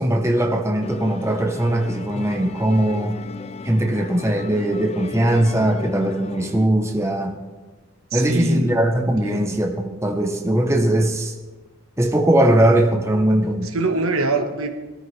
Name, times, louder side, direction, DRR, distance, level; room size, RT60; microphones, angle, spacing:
voice 1, 0.0-3.2 3.6-7.3 8.1-11.3 12.0-13.7, right 1 dB, 15° right, 3 dB, 0.8 m, -20 dB
Musical instrument, 0.8-6.7, left 4 dB, 30° left, 0.4 m, -35 dB
voice 2, 8.1-8.8 9.2-9.5 13.7-14.7, right 3 dB, 70° right, 5 dB, 1.4 m, -24 dB
20.5 x 13.5 x 3.3 m, 1.3 s
head